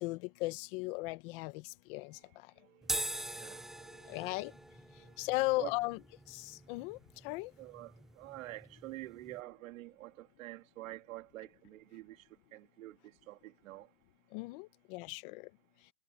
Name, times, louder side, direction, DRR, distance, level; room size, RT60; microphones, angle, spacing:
voice 1, 0.0-2.2 4.1-4.5 5.2-6.0 6.3-7.0 7.2-7.5 14.3-15.5, left 22 dB, 45° left, 1.1 m, -36 dB
voice 2, 2.2-4.5 5.0-5.3 5.6-5.7 7.6-13.9, right 17 dB, 85° right, 2.2 m, -48 dB
sound 1, 2.8-9.4, right 1 dB, ahead, 0.4 m, -43 dB
supercardioid pair, 170°, 39 cm